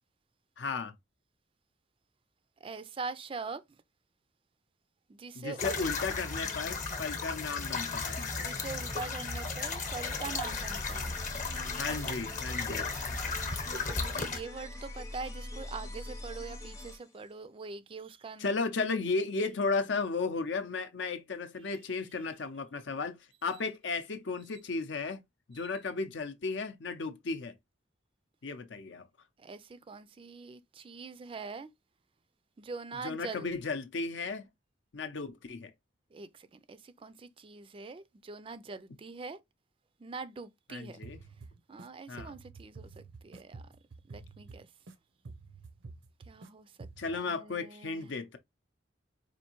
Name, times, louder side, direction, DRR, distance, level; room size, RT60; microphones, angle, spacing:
voice 1, 0.6-0.9 5.3-8.2 11.8-12.9 18.4-25.2 25.5-27.5 28.4-29.0 33.0-34.4 34.9-35.7 40.7-41.2 42.1-42.4 47.0-48.4, left 4 dB, 70° left, 0.6 m, -34 dB
voice 2, 2.6-3.6 5.1-5.8 8.4-11.2 11.5-12.4 13.7-18.5 29.4-31.7 32.6-33.5 36.1-39.4 40.0-41.0 41.7-43.6 44.1-44.7 46.3-46.9 47.1-48.1, right 4 dB, 30° right, 0.3 m, -43 dB
sound 1, 5.6-14.4, left 4 dB, 40° left, 0.9 m, -35 dB
sound 2, 8.2-17.3, left 1 dB, 15° left, 0.6 m, -45 dB
sound 3, 41.0-41.9 42.2-44.9 45.2-46.5 46.8-47.2, right 3 dB, 85° right, 0.6 m, -49 dB
4.4 x 2.6 x 2.9 m
head